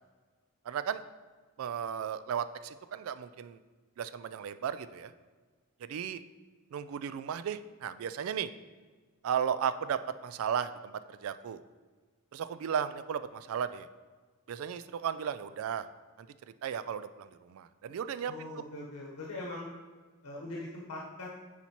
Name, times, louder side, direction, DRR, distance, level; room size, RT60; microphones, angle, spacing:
voice 1, 0.7-1.0 1.6-3.6 4.0-5.1 5.8-6.2 6.7-8.5 9.2-11.6 12.3-13.9 14.5-15.9 16.2-16.3 16.6-18.5, right 8 dB, 70° right, 13 dB, 0.3 m, -35 dB
voice 2, 18.3-19.7 20.2-21.3, left 2 dB, 90° left, -4 dB, 1.1 m, -41 dB
9.8 x 4.2 x 3.0 m, 1.4 s
head